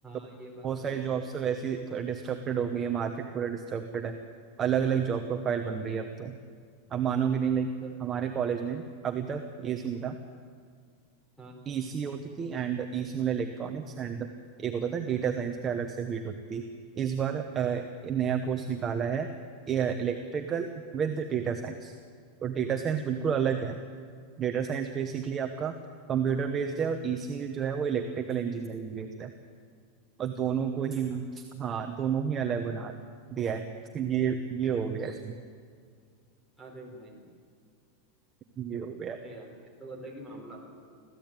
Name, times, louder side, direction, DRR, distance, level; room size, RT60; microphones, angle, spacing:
voice 1, 0.0-1.1 7.8-7.9 11.4-11.5 36.6-37.3 39.1-39.5 39.8-40.6, right 2 dB, ahead, -1 dB, 4.6 m, -45 dB
voice 2, 0.6-4.2 4.6-6.4 6.9-7.7 8.0-10.2 11.7-14.3 14.6-16.6 16.9-19.3 19.7-21.9 22.4-23.8 24.4-25.7 26.1-29.3 30.2-31.2 31.5-32.9 33.3-33.6 33.9-35.4 38.6-39.2, right 7 dB, 20° right, 5 dB, 1.0 m, -30 dB
26.0 x 16.0 x 9.0 m, 2.1 s
supercardioid pair, 170°, 0 cm